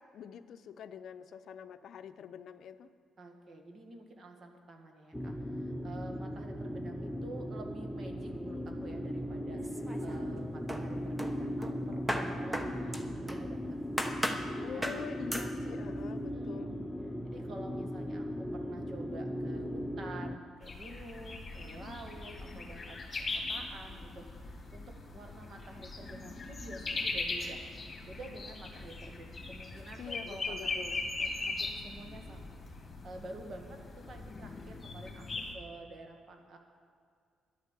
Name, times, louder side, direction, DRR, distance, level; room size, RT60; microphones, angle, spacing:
voice 1, 0.0-2.9 14.6-16.7 30.0-31.0, left 7 dB, 70° left, 10 dB, 0.6 m, -45 dB
voice 2, 3.2-15.1 16.3-16.9 17.2-36.6, right 2 dB, 50° right, 4 dB, 1.7 m, -49 dB
sound 1, 5.1-20.4, equal, 10° left, 0.6 m, -38 dB
sound 2, 9.6-10.4 10.7-13.5 14.0-14.5 14.8-15.0 15.3-15.5, equal, 10° right, 1.1 m, -36 dB
sound 3, 20.6-35.5, left 3 dB, 30° left, 2.3 m, -40 dB
11.5 x 9.4 x 7.3 m, 2.2 s
cardioid pair, 90°, 0 cm